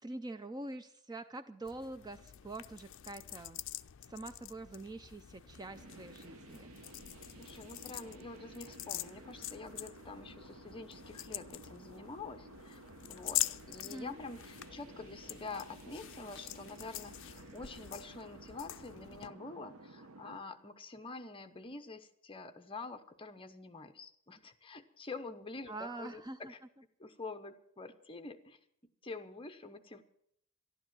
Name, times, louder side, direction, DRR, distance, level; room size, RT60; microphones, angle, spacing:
voice 1, 0.0-3.6 4.1-6.7 13.8-14.2 25.7-26.5, right 2 dB, 20° right, 10 dB, 0.5 m, -45 dB
sound 1, 1.6-19.3, left 15 dB, 60° left, 0.4 m, -45 dB
sound 2, 5.4-20.4, right 2 dB, 75° right, 0.9 m, -54 dB
voice 2, 7.4-12.8 13.1-26.6 27.0-28.6 29.0-30.0, left 3 dB, 25° left, 8 dB, 0.9 m, -47 dB
12.5 x 11.5 x 7.5 m, 0.70 s
head